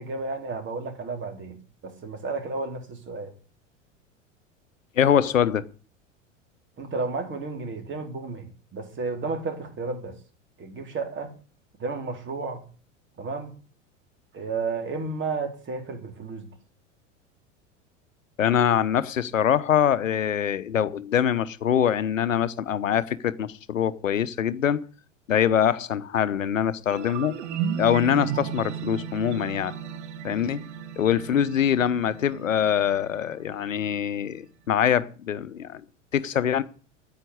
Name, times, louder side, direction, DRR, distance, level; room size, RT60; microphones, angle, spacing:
voice 1, 0.0-3.3 6.8-10.2 10.6-11.3 11.8-12.6 13.2-13.6 14.3-16.5, right 4 dB, 30° right, 3.8 m, -32 dB
voice 2, 5.0-5.6 18.4-24.8 25.3-27.4 27.8-29.7 30.2-30.6 31.0-35.8 36.1-36.6, left 9 dB, 85° left, 0.9 m, -24 dB
sound 1, 26.9-33.9, right 8 dB, 65° right, 2.1 m, -35 dB
9.9 x 9.1 x 9.6 m
hypercardioid pair, 85°, 38 cm